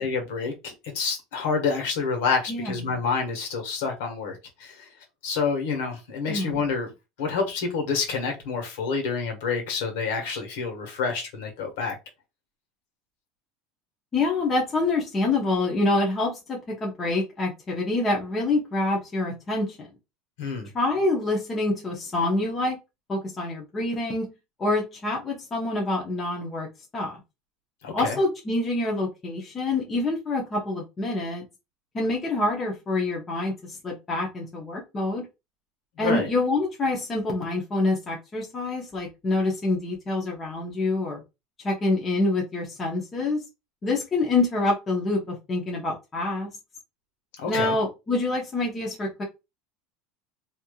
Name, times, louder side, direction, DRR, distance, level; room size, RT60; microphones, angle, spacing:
voice 1, 0.0-4.9 5.2-6.9 7.2-11.9 20.4-20.7 27.8-28.2 36.0-36.3 47.4-47.7, left 5 dB, 85° left, 1.3 m, -28 dB
voice 2, 2.5-3.0 6.3-6.6 14.1-19.9 20.7-22.8 23.1-24.3 24.6-26.7 26.9-27.2 27.9-31.4 31.9-35.3 36.0-41.2 41.6-43.4 43.8-46.5 47.5-49.2, left 2 dB, 25° left, 0.9 m, -26 dB
3.3 x 2.8 x 2.3 m
supercardioid pair, 140°, 0 cm